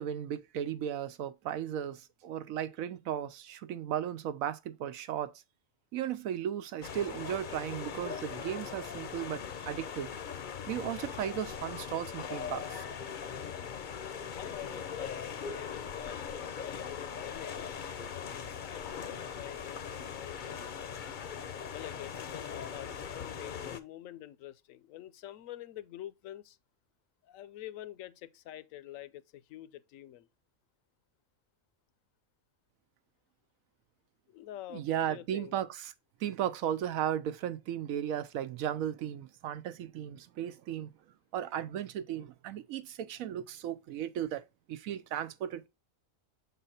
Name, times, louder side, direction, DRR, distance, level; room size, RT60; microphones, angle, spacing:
voice 1, 0.0-5.4 5.9-10.1 10.7-12.8 34.7-35.9 36.2-40.9 41.3-45.7, right 10 dB, 85° right, 1.1 m, -35 dB
sound 1, 6.8-23.8, left 7 dB, 50° left, 0.6 m, -40 dB
voice 2, 14.2-17.7 18.1-20.9 21.7-26.6 27.2-30.3 34.3-35.6, left 13 dB, 80° left, 1.0 m, -47 dB
6.7 x 4.0 x 4.1 m
omnidirectional pair, 1.4 m